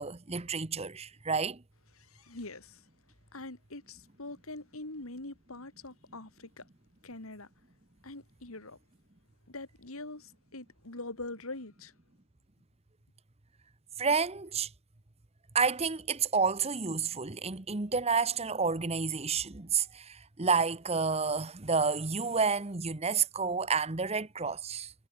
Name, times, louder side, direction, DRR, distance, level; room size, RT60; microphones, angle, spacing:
voice 1, 0.0-1.6 14.0-14.7 15.5-24.9, right 5 dB, 30° right, 1.0 m, -30 dB
voice 2, 2.0-2.8 3.3-6.7 7.0-7.5 8.0-8.8 9.5-11.9, left 2 dB, 75° left, 3.1 m, -43 dB
head